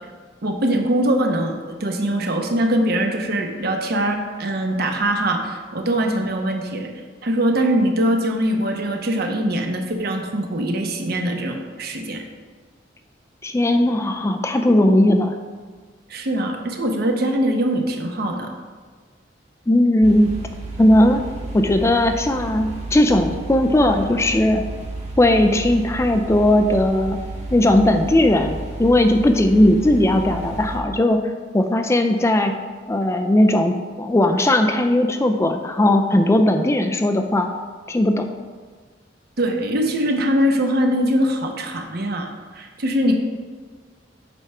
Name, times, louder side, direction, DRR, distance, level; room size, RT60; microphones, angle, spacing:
voice 1, 0.4-6.9 7.2-12.2 16.1-18.5 39.4-43.1, right 1 dB, 60° right, 3 dB, 0.9 m, -22 dB
voice 2, 13.4-15.4 19.7-20.3 20.8-21.2 21.5-24.6 25.2-27.2 27.5-31.2 31.5-32.5 32.9-37.5 37.9-38.3, left 1 dB, 15° left, 5 dB, 0.4 m, -17 dB
sound 1, 20.0-30.8, right 2 dB, 40° right, 1.4 m, -32 dB
8.2 x 3.5 x 5.5 m, 1.5 s
head